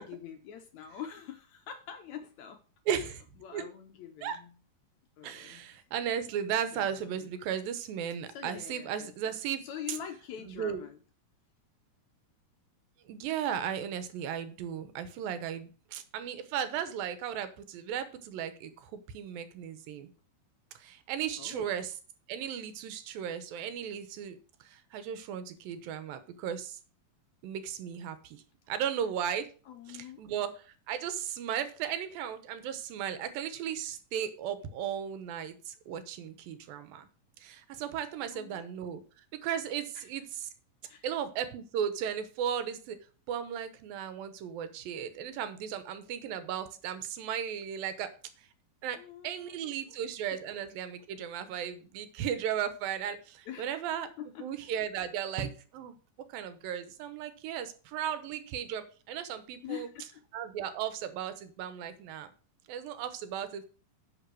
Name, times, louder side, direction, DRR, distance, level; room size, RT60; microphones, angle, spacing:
voice 1, 0.0-2.6 3.0-3.1 3.4-4.6 5.2-5.8 6.7-7.2 8.3-9.3 9.6-11.0 21.4-21.7 29.7-30.2 38.3-38.7 40.0-40.1 40.8-41.1 49.0-50.0 50.3-50.4 53.5-54.5 59.6-60.2, left 9 dB, 75° left, 6 dB, 1.7 m, -45 dB
voice 2, 2.9-3.2 3.5-3.6 4.2-4.4 5.2-9.6 10.4-10.8 13.1-20.1 20.8-21.9 22.3-26.8 27.4-29.5 29.9-37.1 37.4-39.0 39.4-40.2 41.0-43.0 43.3-48.1 48.8-49.0 49.2-54.1 54.4-55.9 56.3-59.9 60.3-62.3 62.7-63.7, right 9 dB, 90° right, 11 dB, 2.8 m, -36 dB
10.0 x 4.6 x 6.2 m, 0.37 s
omnidirectional pair, 4.0 m